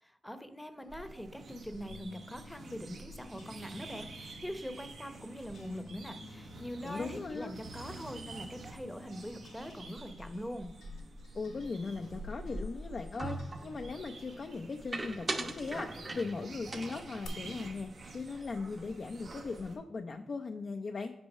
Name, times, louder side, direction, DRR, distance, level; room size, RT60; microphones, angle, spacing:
voice 1, 0.0-10.7, equal, 5° left, 9 dB, 0.8 m, -43 dB
sound 1, 0.8-17.3, left 2 dB, 85° left, 1.2 m, -55 dB
sound 2, 0.9-19.8, right 2 dB, 70° right, 1.0 m, -48 dB
voice 2, 6.8-7.5 11.3-21.1, left 4 dB, 55° left, 4 dB, 0.5 m, -39 dB
sound 3, 13.2-13.8 14.9-16.4 16.7-18.5 18.7-18.9 19.2-19.7, right 2 dB, 40° right, 1.0 m, -40 dB
6.1 x 4.5 x 5.4 m, 0.85 s
supercardioid pair, 50°, 0 cm